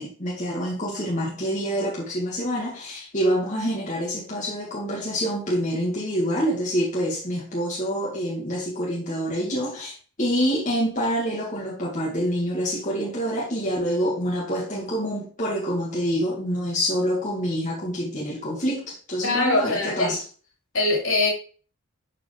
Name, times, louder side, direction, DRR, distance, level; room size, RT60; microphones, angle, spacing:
voice 1, 0.0-20.2, equal, 35° left, -5 dB, 2.1 m, -26 dB
voice 2, 19.2-20.2 20.7-21.3, left 2 dB, 65° left, -1 dB, 3.3 m, -22 dB
12.5 x 4.6 x 3.4 m, 0.40 s
head